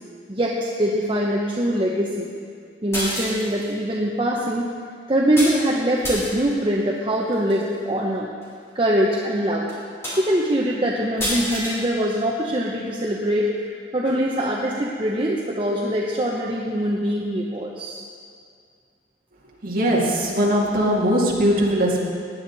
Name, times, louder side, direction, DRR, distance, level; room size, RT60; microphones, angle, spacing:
voice 1, 0.3-2.3 2.8-4.7 5.1-8.3 8.7-9.7 10.2-18.0, equal, 25° right, -3 dB, 0.9 m, -23 dB
sound 1, 2.9-3.7 5.4-5.6 6.0-6.5 7.3-7.6 8.4-8.5 9.0-9.1 9.7-9.8 10.0-10.5 11.2-11.8, equal, 15° left, 3.2 m, -28 dB
voice 2, 19.6-22.0, equal, 50° right, -4 dB, 2.3 m, -20 dB
18.0 x 10.0 x 4.1 m, 2.2 s
head